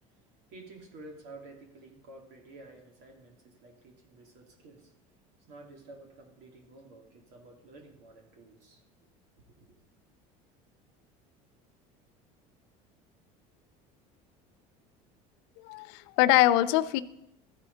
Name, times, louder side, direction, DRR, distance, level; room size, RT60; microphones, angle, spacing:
voice 1, 0.1-4.9 5.5-8.8 9.6-9.7, right 2 dB, 70° right, 1 dB, 2.5 m, -51 dB
voice 2, 15.6-17.0, left 14 dB, 75° left, 15 dB, 0.5 m, -23 dB
14.5 x 5.0 x 3.9 m, 0.90 s
supercardioid pair, 105°, 17 cm